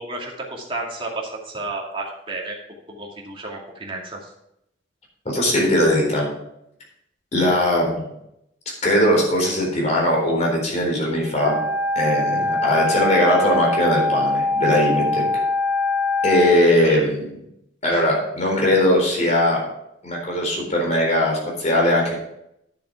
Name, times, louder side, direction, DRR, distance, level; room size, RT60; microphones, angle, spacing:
voice 1, 0.0-2.6 3.0-4.3 16.8-17.1 17.9-18.0, right 2 dB, 30° right, -2 dB, 2.4 m, -32 dB
voice 2, 5.2-6.3 7.3-8.1 8.8-11.6 11.9-15.2 16.2-17.4 17.8-19.6 20.0-22.1, left 1 dB, 40° left, -1 dB, 4.0 m, -20 dB
Wind instrument woodwind instrument, 11.3-16.6, left 2 dB, 10° left, 4.3 m, -22 dB
10.0 x 7.1 x 4.8 m, 0.79 s
head